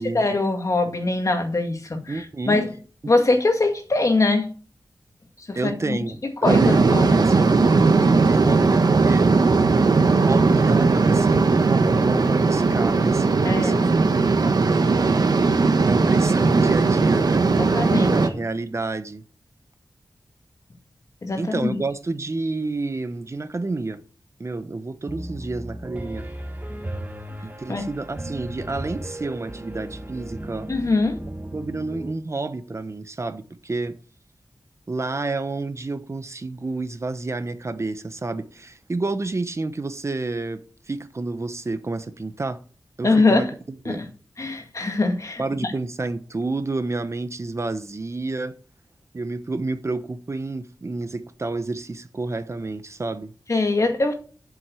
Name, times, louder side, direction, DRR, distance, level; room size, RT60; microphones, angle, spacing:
voice 1, 0.0-2.7 3.1-4.5 5.4-7.2 13.4-13.9 17.6-18.2 21.2-21.8 27.7-27.8 30.7-31.2 43.0-43.5 43.9-44.1 44.4-45.7 53.5-54.1, left 2 dB, 50° left, 2.1 m, -22 dB
voice 2, 2.1-2.6 5.5-9.3 10.2-15.3 15.8-17.4 18.0-19.2 21.3-24.0 24.4-26.3 27.4-30.7 31.5-34.0 34.9-42.6 43.0-43.5 43.8-44.0 45.4-48.6 49.1-53.3, right 3 dB, 40° right, 1.0 m, -30 dB
sound 1, 6.4-18.3, right 4 dB, 70° right, 1.3 m, -18 dB
Piano, 25.1-32.1, right 1 dB, 25° right, 1.9 m, -35 dB
7.8 x 7.5 x 8.4 m
wide cardioid pair, 85°, 7 cm